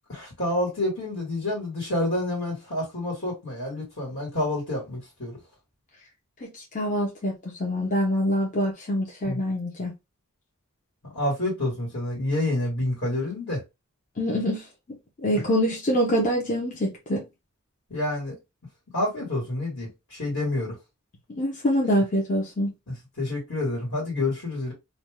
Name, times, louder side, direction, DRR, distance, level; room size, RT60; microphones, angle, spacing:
voice 1, 0.1-5.4 9.2-9.4 11.1-13.6 17.9-18.4 18.9-20.7 22.9-24.7, left 1 dB, 60° left, 1.5 m, -28 dB
voice 2, 6.4-7.3 7.6-9.9 14.2-14.6 15.2-17.2 21.4-22.7, equal, 35° left, 0.8 m, -25 dB
2.6 x 2.3 x 3.3 m
head